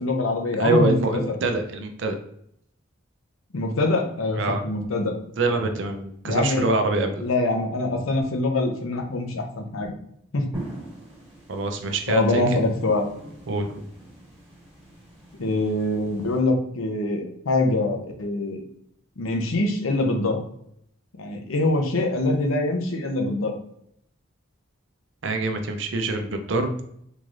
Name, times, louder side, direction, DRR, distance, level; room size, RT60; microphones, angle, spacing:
voice 1, 0.0-0.9 3.5-5.1 6.2-6.7 7.2-9.9 10.3-10.5 12.1-13.0 15.4-18.6 19.2-20.4 21.2-23.5, left 2 dB, 85° left, 3 dB, 0.7 m, -24 dB
voice 2, 0.6-2.2 4.3-4.6 5.4-7.2 11.5-12.4 13.5-13.8 25.2-26.7, right 3 dB, 65° right, 6 dB, 0.5 m, -25 dB
sound 1, 10.5-16.4, right 1 dB, 10° right, 1.4 m, -43 dB
3.8 x 3.1 x 2.5 m, 0.71 s
head